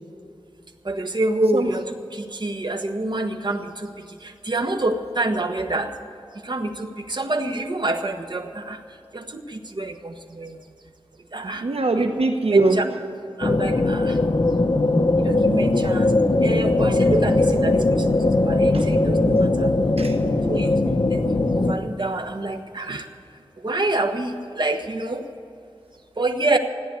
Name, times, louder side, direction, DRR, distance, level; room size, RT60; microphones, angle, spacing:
voice 1, 0.9-1.8 2.4-3.6 4.5-5.9 6.5-8.8 9.1-9.4 9.8-10.5 11.3-11.6 12.5-12.6 13.4-14.1 15.2-16.1 16.4-17.4 17.6-17.8 18.5-19.7 20.5-20.7 21.1-21.2 21.6-23.0 23.6-25.2 26.2-26.6, right 2 dB, 45° right, 5 dB, 1.3 m, -26 dB
voice 2, 11.4-13.0 14.8-15.7 18.7-18.9 20.0-20.1 22.9-23.0, right 3 dB, 70° right, 4 dB, 0.9 m, -23 dB
sound 1, 13.4-21.7, left 2 dB, 45° left, 1.0 m, -20 dB
15.0 x 10.0 x 8.2 m, 2.7 s
wide cardioid pair, 65°, 10 cm